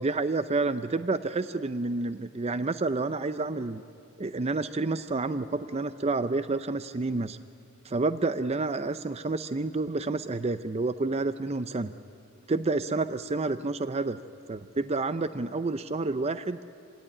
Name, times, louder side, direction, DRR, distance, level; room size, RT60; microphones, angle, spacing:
voice 1, 0.0-3.8 4.2-7.4 7.8-11.9 12.5-14.2 14.5-16.6, right 3 dB, 30° right, 12 dB, 0.5 m, -29 dB
26.5 x 17.5 x 9.8 m, 2.4 s
head